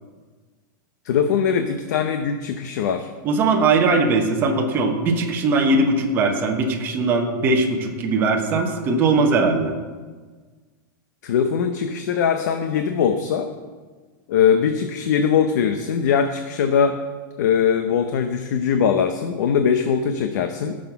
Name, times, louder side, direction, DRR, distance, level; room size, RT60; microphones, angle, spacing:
voice 1, 1.0-3.1 11.2-13.5 14.3-17.0 17.4-20.8, left 7 dB, 55° left, 7 dB, 0.7 m, -21 dB
voice 2, 3.2-9.7, right 3 dB, 20° right, 1 dB, 1.0 m, -20 dB
14.0 x 6.5 x 5.7 m, 1.4 s
supercardioid pair, 175°, 11 cm